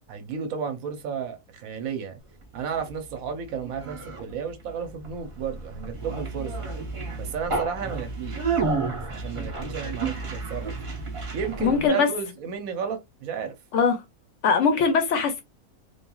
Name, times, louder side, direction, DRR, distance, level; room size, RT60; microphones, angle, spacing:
voice 1, 0.1-2.2 2.5-6.5 7.1-8.6 9.1-10.7 11.3-13.5, right 6 dB, 75° right, 1.1 m, -33 dB
Conversation, 2.4-11.9, right 4 dB, 35° right, 0.6 m, -32 dB
voice 2, 11.6-12.1 13.7-14.0 14.4-15.4, left 5 dB, 70° left, 0.8 m, -21 dB
3.1 x 2.4 x 2.2 m
omnidirectional pair, 1.5 m